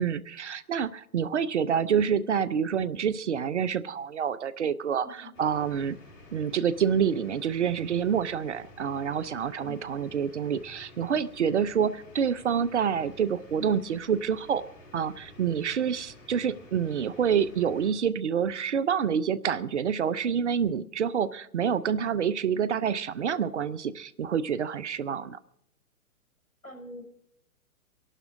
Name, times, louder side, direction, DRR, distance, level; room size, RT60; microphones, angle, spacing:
voice 1, 0.0-6.0 6.3-14.6 14.9-25.4, right 7 dB, 50° right, 15 dB, 0.7 m, -27 dB
voice 2, 5.0-5.3 9.6-9.8 26.6-27.0, left 2 dB, 70° left, 3 dB, 4.7 m, -44 dB
sound 1, 5.3-17.9, left 1 dB, 45° left, 6.8 m, -51 dB
24.5 x 11.5 x 3.8 m, 0.74 s
figure-of-eight pair, 120°, 44 cm